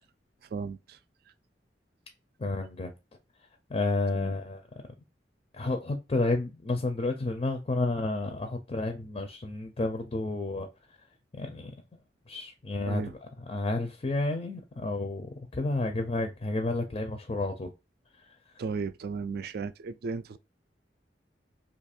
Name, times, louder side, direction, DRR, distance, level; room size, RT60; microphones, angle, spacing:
voice 1, 0.5-1.0 4.1-4.3 12.8-13.1 18.6-20.4, right 5 dB, 60° right, 0.3 m, -35 dB
voice 2, 2.4-2.9 3.7-4.6 5.5-10.7 11.3-11.7 12.3-13.0 13.5-17.7, left 2 dB, 30° left, 0.4 m, -31 dB
2.7 x 2.4 x 4.2 m
head